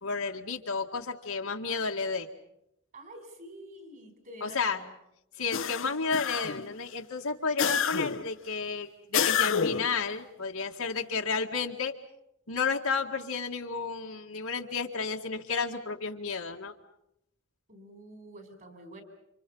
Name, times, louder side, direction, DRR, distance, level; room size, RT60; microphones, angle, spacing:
voice 1, 0.0-2.3 4.4-4.8 5.4-11.9 12.5-16.7, left 5 dB, 85° left, 1 dB, 2.0 m, -32 dB
voice 2, 2.9-4.9 17.7-19.0, right 1 dB, 45° right, 5 dB, 4.6 m, -48 dB
sound 1, 5.5-6.7 7.6-8.3 9.1-10.0, left 7 dB, 65° left, 0.9 m, -28 dB
30.0 x 26.5 x 5.6 m, 0.80 s
head